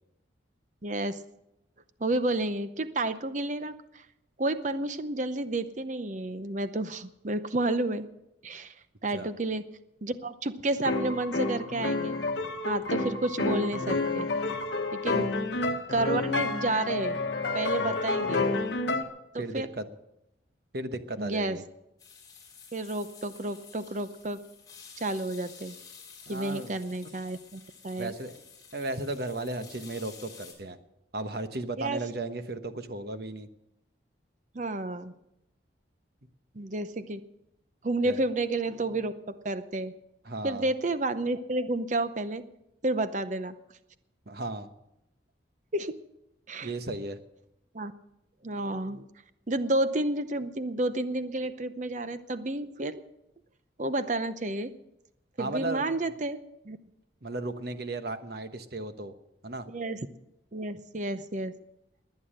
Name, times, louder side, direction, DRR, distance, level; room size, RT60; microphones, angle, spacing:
voice 1, 0.8-1.2 2.0-4.0 4.4-8.1 8.4-8.7 9.0-9.6 10.0-12.2 12.6-14.3 14.9-15.4 15.9-17.2 17.5-18.5 19.3-19.7 21.2-21.6 22.7-24.4 25.0-25.8 26.3-28.1 31.8-32.0 34.5-35.1 36.6-37.2 37.8-39.9 40.4-42.4 42.8-43.5 45.7-46.0 46.5-46.7 47.7-47.9 48.4-49.0 49.5-53.0 53.8-54.7 55.4-56.4 56.6-56.8 59.7-60.0 60.5-61.5, right 2 dB, 40° right, 12 dB, 0.7 m, -31 dB
sound 1, 10.8-19.0, left 3 dB, 65° left, 1.3 m, -29 dB
voice 2, 15.0-15.3 17.8-18.0 19.4-19.9 20.7-21.6 26.3-26.8 28.0-28.4 28.7-30.8 31.1-33.5 38.0-38.2 40.2-40.7 44.3-44.7 46.6-47.2 55.4-55.9 57.2-59.1 59.4-59.7, right 2 dB, 55° right, 9 dB, 1.1 m, -35 dB
sound 2, 22.0-30.5, left 6 dB, 20° left, 3.8 m, -51 dB
20.0 x 9.4 x 6.6 m, 0.87 s
head